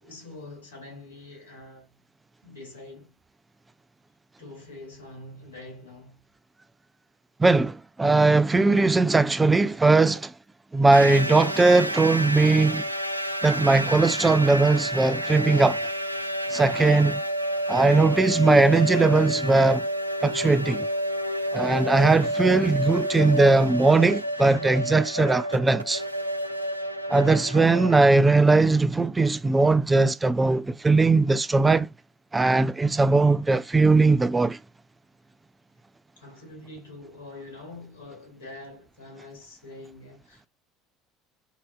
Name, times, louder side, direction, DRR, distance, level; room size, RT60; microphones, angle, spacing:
voice 1, 0.0-1.9 2.4-3.1 4.4-6.2 36.2-40.5, left 2 dB, 80° left, 2.1 m, -44 dB
voice 2, 7.4-10.2 10.7-12.8 13.4-15.9 16.5-17.2 17.7-19.8 20.2-20.9 21.5-26.0 27.1-31.9 32.3-34.6, right 3 dB, 15° right, 0.3 m, -19 dB
sound 1, 10.9-28.0, equal, 85° right, 0.4 m, -30 dB
5.5 x 2.7 x 2.2 m
figure-of-eight pair, 65°, 0 cm